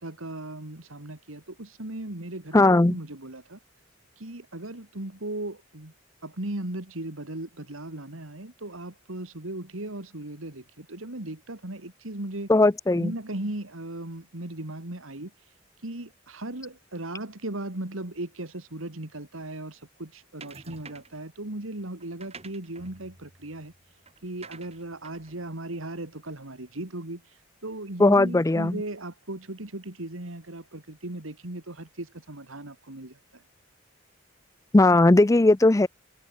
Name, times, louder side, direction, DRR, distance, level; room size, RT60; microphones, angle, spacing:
voice 1, 0.0-3.6 4.2-5.9 6.2-12.5 12.9-15.3 15.8-23.7 24.2-27.2 27.6-33.4, right 1 dB, 90° right, 2.7 m, -37 dB
voice 2, 2.5-2.9 12.5-13.1 28.0-28.8 34.7-35.9, left 2 dB, 15° left, 0.4 m, -18 dB
sound 1, 20.4-21.3 22.0-26.7, right 4 dB, 30° right, 4.7 m, -50 dB
head